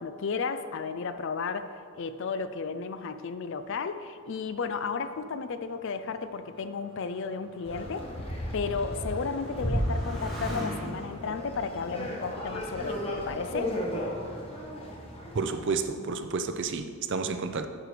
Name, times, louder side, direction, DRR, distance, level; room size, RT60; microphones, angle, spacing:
voice 1, 0.0-8.1 8.5-13.8, left 5 dB, 55° left, 11 dB, 0.4 m, -33 dB
Motorcycle, 4.5-13.5 14.3-14.8, equal, ahead, 1.5 m, -44 dB
sound 1, 7.7-15.7, equal, 25° left, 1.2 m, -34 dB
voice 2, 15.3-17.7, right 4 dB, 55° right, 8 dB, 0.5 m, -30 dB
10.0 x 4.7 x 4.9 m, 2.2 s
head